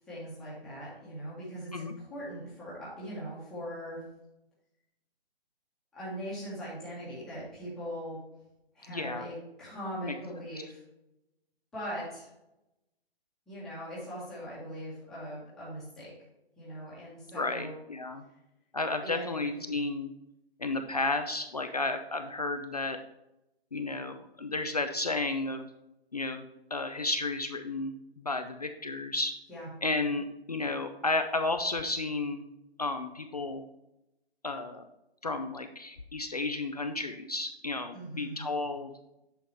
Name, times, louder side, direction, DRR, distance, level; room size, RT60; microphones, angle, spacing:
voice 1, 0.1-4.0 5.9-8.2 8.7-10.8 11.7-12.3 13.5-16.1 16.6-17.7 19.0-19.6 29.5-29.7 37.9-38.5, equal, ahead, -10 dB, 1.4 m, -40 dB
voice 2, 8.9-9.3 10.0-10.1 17.3-18.2 18.7-20.1 20.6-23.0 23.7-25.7 26.1-26.4 26.7-29.3 29.8-32.5 32.8-33.6 34.4-34.9 35.2-38.9, left 2 dB, 40° left, 6 dB, 0.4 m, -32 dB
8.2 x 5.6 x 3.3 m, 0.90 s
hypercardioid pair, 170°, 32 cm